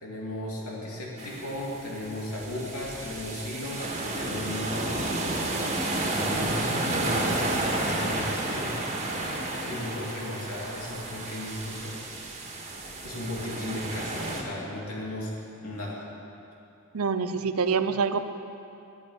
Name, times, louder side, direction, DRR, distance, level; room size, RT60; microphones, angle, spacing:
voice 1, 0.0-5.1 6.1-8.9 9.7-12.0 13.0-15.3 15.6-16.1, left 1 dB, 70° left, -4 dB, 2.9 m, -35 dB
sound 1, 1.2-14.4, right 2 dB, 30° right, 1.9 m, -31 dB
voice 2, 16.9-18.3, right 5 dB, 75° right, 10 dB, 0.7 m, -26 dB
10.5 x 10.5 x 9.3 m, 2.7 s
head